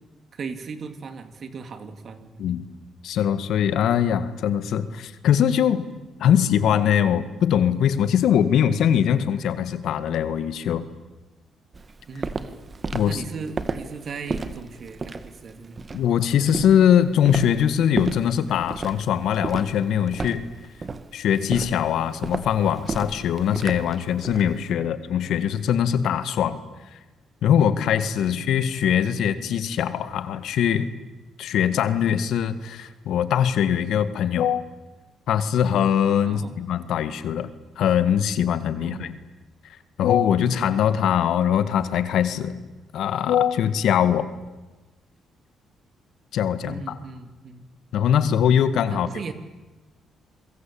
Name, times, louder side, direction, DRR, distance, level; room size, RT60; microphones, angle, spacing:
voice 1, 0.3-2.6 12.1-12.6 13.1-15.8 24.8-25.0 28.1-28.4 36.3-36.5 38.8-39.1 46.6-47.6 48.9-49.3, right 5 dB, 50° right, 9 dB, 3.1 m, -37 dB
voice 2, 3.0-5.8 6.2-10.9 12.9-13.2 15.9-20.5 21.1-26.6 27.4-30.9 31.4-34.6 35.3-39.1 40.0-42.6 42.9-44.3 46.3-46.8 47.9-49.1, left 9 dB, 75° left, 12 dB, 1.9 m, -22 dB
Walk footsteps, 11.7-24.5, right 4 dB, 35° right, 2.1 m, -33 dB
28.0 x 23.0 x 8.8 m, 1.2 s
cardioid pair, 90°, 0 cm